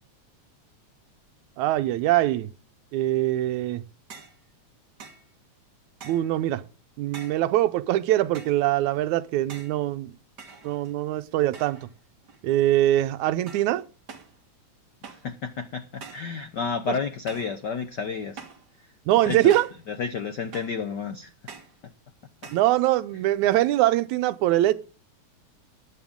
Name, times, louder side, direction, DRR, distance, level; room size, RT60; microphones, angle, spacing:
voice 1, 1.6-2.5 2.9-3.8 6.0-6.6 7.0-10.1 10.6-11.9 12.4-13.8 16.9-17.0 19.1-19.7 22.5-24.7, right 14 dB, 85° right, 2.1 m, -23 dB
sound 1, 4.1-4.4 5.0-5.3 6.0-6.4 7.1-7.5 8.3-8.7 9.5-9.8 10.4-11.0 11.5-11.9 12.2-12.7 13.5-13.8 14.1-14.4 15.0-15.3 16.0-16.3 17.3-17.6 18.4-18.7 19.5-19.8 20.5-20.8 21.5-21.8 22.4-22.7, right 5 dB, 40° right, 1.9 m, -45 dB
voice 2, 15.1-18.4 19.2-19.5 19.9-21.3 23.1-23.2, left 5 dB, 85° left, 0.9 m, -31 dB
14.5 x 9.7 x 3.7 m
omnidirectional pair, 3.3 m